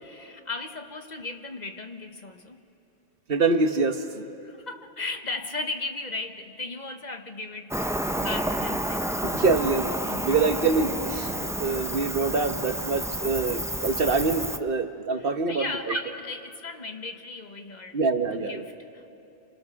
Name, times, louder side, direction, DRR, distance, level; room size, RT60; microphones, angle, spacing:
voice 1, 0.0-2.6 4.1-7.8 8.2-9.2 15.2-18.0 18.3-19.1, left 3 dB, 45° left, 1.2 m, -36 dB
voice 2, 3.3-4.0 9.2-15.9 17.9-18.6, right 4 dB, 65° right, 1.3 m, -25 dB
Cricket, 7.7-14.6, right 1 dB, 5° right, 0.4 m, -30 dB
29.5 x 26.0 x 6.4 m
omnidirectional pair, 1.0 m